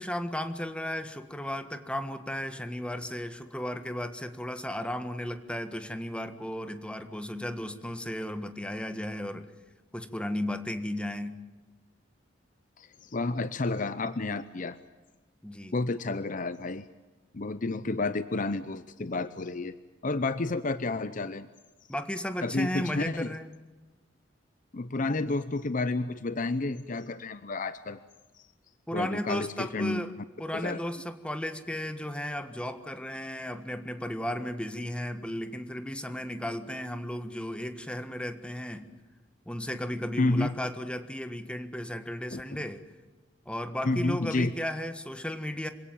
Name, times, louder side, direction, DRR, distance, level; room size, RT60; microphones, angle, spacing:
voice 1, 0.0-9.5 9.9-11.4 15.4-15.8 21.9-23.5 28.9-30.1 30.4-38.9 39.4-42.8 43.4-45.7, left 1 dB, 5° left, 9 dB, 1.5 m, -35 dB
voice 2, 12.8-14.8 15.7-16.8 17.3-19.8 20.0-21.5 22.4-23.3 24.7-28.0 28.3-28.5 28.9-30.0 30.5-30.8 40.2-40.5 42.3-42.4 43.8-44.5, left 2 dB, 45° left, 13 dB, 0.7 m, -30 dB
26.5 x 17.5 x 9.2 m, 1.2 s
head